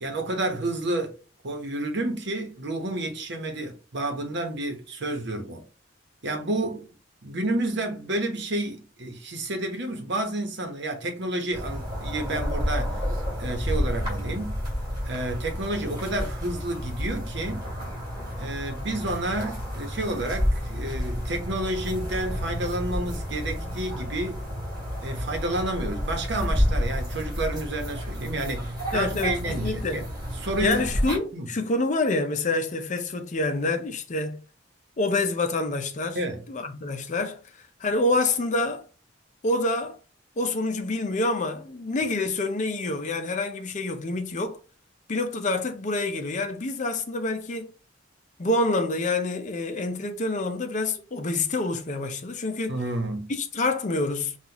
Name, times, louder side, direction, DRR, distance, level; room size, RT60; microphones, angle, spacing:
voice 1, 0.0-1.2 1.4-5.6 6.2-6.9 7.2-13.0 13.4-14.6 15.0-17.7 18.4-24.4 25.0-30.0 30.4-30.9 31.3-31.5 36.1-36.4 52.7-53.3, right 1 dB, 65° right, 1.0 m, -30 dB
sound 1, 11.5-31.2, equal, 25° right, 2.3 m, -30 dB
voice 2, 28.9-30.0 30.6-34.4 35.0-36.2 36.5-37.4 37.8-38.8 39.4-40.0 40.4-44.6 45.1-47.7 48.4-52.8 53.3-54.4, left 2 dB, 40° left, 0.5 m, -27 dB
5.5 x 2.4 x 2.9 m
head